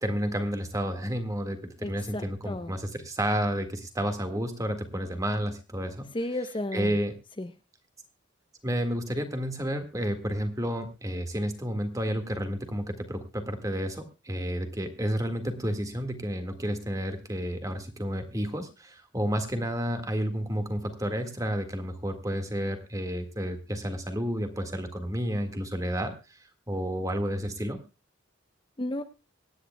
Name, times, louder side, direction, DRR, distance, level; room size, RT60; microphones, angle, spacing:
voice 1, 0.0-6.1 6.7-7.1 8.6-26.1 26.7-27.8, equal, 15° right, 7 dB, 1.7 m, -31 dB
voice 2, 1.8-2.7 6.1-6.9 7.4-7.5 28.8-29.0, left 1 dB, 25° left, 8 dB, 0.7 m, -33 dB
25.0 x 9.8 x 2.2 m, 0.28 s
head